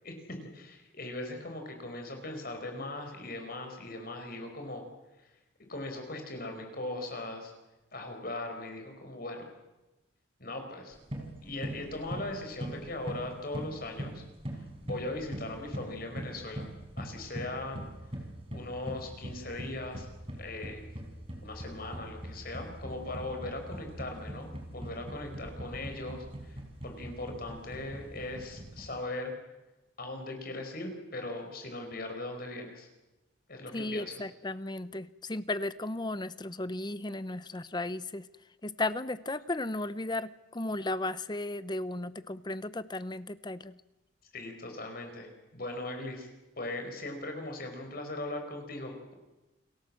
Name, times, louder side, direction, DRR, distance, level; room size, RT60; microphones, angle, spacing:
voice 1, 0.0-4.8 5.7-7.5 7.9-9.5 10.4-11.0 11.4-14.2 14.8-16.7 17.0-17.8 18.5-20.1 20.4-20.9 21.4-29.3 30.0-32.9 33.5-34.1 44.3-46.3 46.6-49.1, left 2 dB, 50° left, 4 dB, 5.3 m, -39 dB
sound 1, 10.9-29.0, right 1 dB, 30° right, 4.5 m, -42 dB
voice 2, 33.7-38.3 38.6-43.7, left 2 dB, 20° left, 14 dB, 0.8 m, -35 dB
29.0 x 19.5 x 7.7 m, 1.0 s
head